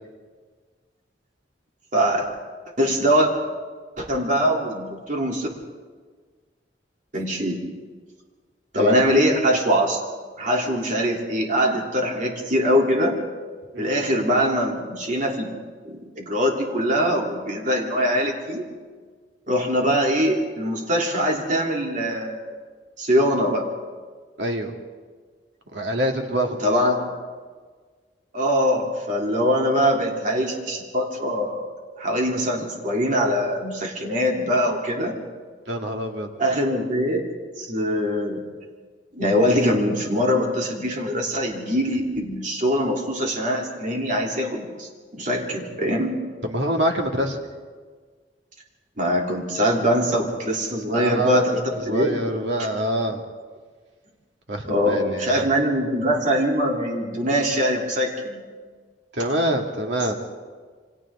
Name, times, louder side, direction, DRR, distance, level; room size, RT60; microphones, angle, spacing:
voice 1, 1.9-2.3 2.8-3.3 4.0-5.5 7.1-7.6 8.7-10.0 10.4-13.2 13.8-15.5 15.8-18.6 19.5-22.4 23.0-23.7 26.6-27.1 28.3-31.7 32.0-35.2 36.4-38.5 39.1-46.2 49.0-52.2 54.6-58.5, equal, 45° right, -1 dB, 3.3 m, -22 dB
voice 2, 24.4-24.7 25.7-26.7 35.7-36.3 46.4-47.4 50.9-51.6 51.9-53.2 54.5-55.5 59.1-60.1, right 1 dB, 75° right, 2 dB, 2.4 m, -25 dB
28.5 x 24.5 x 3.8 m, 1.5 s
head